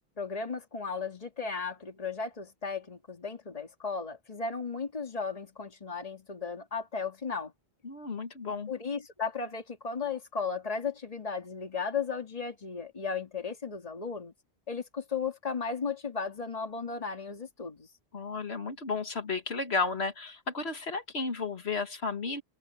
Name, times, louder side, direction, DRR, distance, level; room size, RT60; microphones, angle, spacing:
voice 1, 0.2-7.5 8.7-14.3 14.7-17.9, left 5 dB, 35° left, 2.0 m, -35 dB
voice 2, 7.8-8.7 18.1-22.4, left 4 dB, 80° left, 2.1 m, -33 dB
omnidirectional pair, 1.1 m